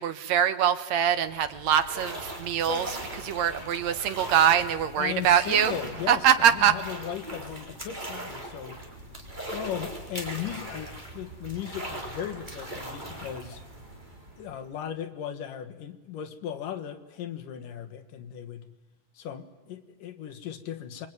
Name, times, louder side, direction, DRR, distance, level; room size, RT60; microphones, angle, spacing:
voice 1, 0.0-2.9 3.2-5.7 6.1-6.8, right 9 dB, 65° right, 10 dB, 2.0 m, -23 dB
sound 1, 1.0-14.8, right 1 dB, 15° right, 3.7 m, -40 dB
voice 2, 5.0-8.8 9.5-13.6 14.4-18.6 19.1-21.1, left 9 dB, 75° left, 7 dB, 3.0 m, -37 dB
26.0 x 22.0 x 9.5 m, 1.1 s
omnidirectional pair, 4.0 m